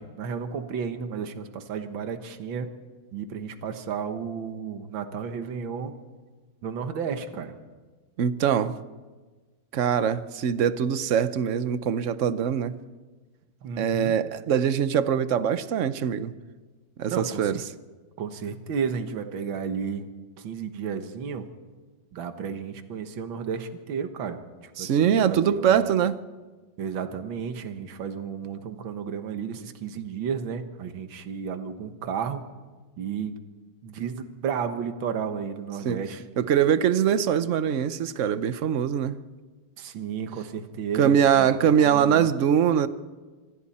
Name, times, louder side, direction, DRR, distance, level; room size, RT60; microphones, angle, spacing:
voice 1, 0.0-2.7 3.1-6.0 6.6-7.6 13.6-14.1 17.1-17.6 18.2-20.1 20.4-21.5 22.1-25.9 26.8-32.5 33.0-33.4 33.8-36.3 39.8-41.5 41.8-42.3, right 6 dB, 75° right, 2.0 m, -33 dB
voice 2, 8.2-8.7 9.7-12.7 13.8-16.3 17.0-17.6 24.8-26.2 35.8-36.0 36.4-39.2 41.0-42.9, right 8 dB, 55° right, 0.8 m, -23 dB
26.0 x 26.0 x 4.3 m
omnidirectional pair, 2.2 m